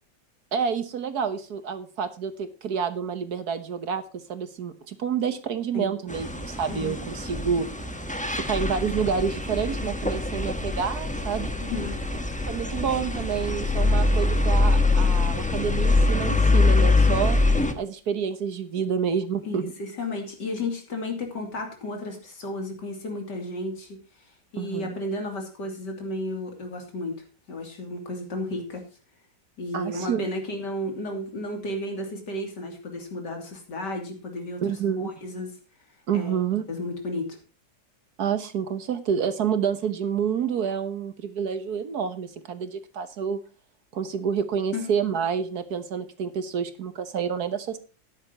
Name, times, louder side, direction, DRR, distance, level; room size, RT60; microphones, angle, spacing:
voice 1, 0.5-7.7 8.4-11.5 12.5-17.4 17.8-19.7 24.6-25.0 29.7-30.3 34.6-35.1 36.1-36.6 38.2-43.4 43.9-47.8, right 7 dB, 60° right, 10 dB, 1.5 m, -28 dB
sound 1, 6.1-17.7, left 2 dB, 5° left, 0.7 m, -24 dB
voice 2, 11.6-12.0 19.4-24.0 24.5-28.8 29.6-35.5 36.1-36.3 36.7-37.4 44.7-44.9, left 1 dB, 65° left, 3 dB, 3.4 m, -33 dB
13.0 x 10.0 x 2.9 m, 0.34 s
omnidirectional pair, 2.0 m